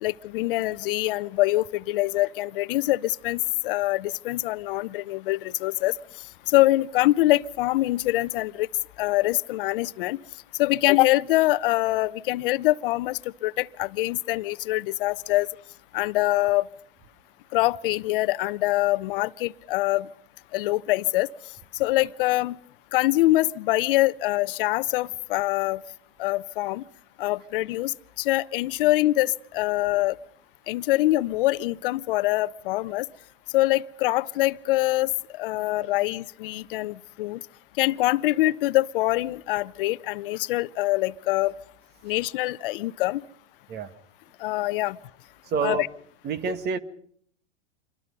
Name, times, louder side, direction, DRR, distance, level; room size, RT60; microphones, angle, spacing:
voice 1, 0.0-5.9 6.5-8.7 9.0-10.2 10.6-15.5 15.9-16.7 17.5-20.1 20.5-21.3 21.8-22.6 22.9-25.8 26.2-26.8 27.2-30.2 30.7-33.1 33.5-37.4 37.8-41.5 42.0-43.2 44.4-45.0 45.6-45.9 46.4-46.5, left 17 dB, 60° left, 0.9 m, -24 dB
voice 2, 45.4-45.9 46.2-46.8, right 5 dB, 30° right, 1.9 m, -28 dB
27.5 x 23.0 x 5.4 m
hypercardioid pair, 115°, 31 cm